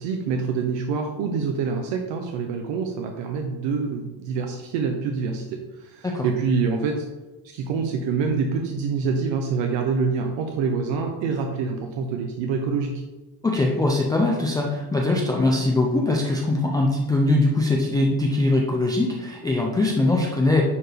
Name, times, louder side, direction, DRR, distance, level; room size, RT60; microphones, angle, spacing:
voice 1, 0.0-7.0 7.4-13.0, right 5 dB, 70° right, 3 dB, 1.0 m, -26 dB
voice 2, 13.4-20.6, left 2 dB, 10° left, -2 dB, 0.3 m, -21 dB
9.9 x 4.7 x 3.4 m, 1.1 s
cardioid pair, 170°, 47 cm